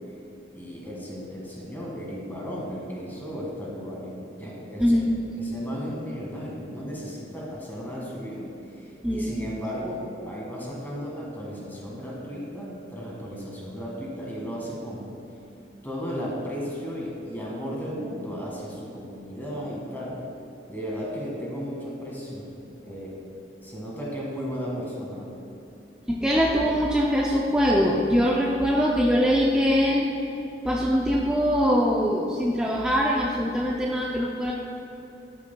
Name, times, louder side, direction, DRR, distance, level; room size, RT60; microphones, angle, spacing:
voice 1, 0.5-5.0 5.3-15.1 15.8-20.2 20.7-23.2 23.6-25.3, equal, 10° left, -4 dB, 1.7 m, -35 dB
voice 2, 4.8-5.1 9.0-9.4 26.1-30.1 30.6-34.5, equal, 5° right, -3 dB, 0.4 m, -22 dB
12.0 x 7.3 x 2.2 m, 2.9 s
head